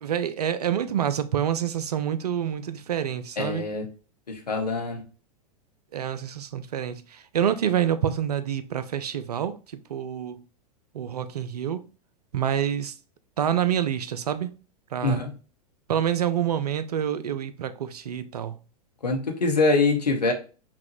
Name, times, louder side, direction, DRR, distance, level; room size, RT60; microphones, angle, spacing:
voice 1, 0.0-3.6 5.9-9.6 9.9-10.4 10.9-11.9 12.3-12.9 13.4-14.5 14.9-15.2 15.9-18.6, right 9 dB, 75° right, 0.5 m, -27 dB
voice 2, 3.4-3.9 4.3-5.0 15.0-15.3 19.0-20.3, left 3 dB, 80° left, 1.1 m, -24 dB
5.7 x 2.3 x 3.0 m
figure-of-eight pair, 95°, 20 cm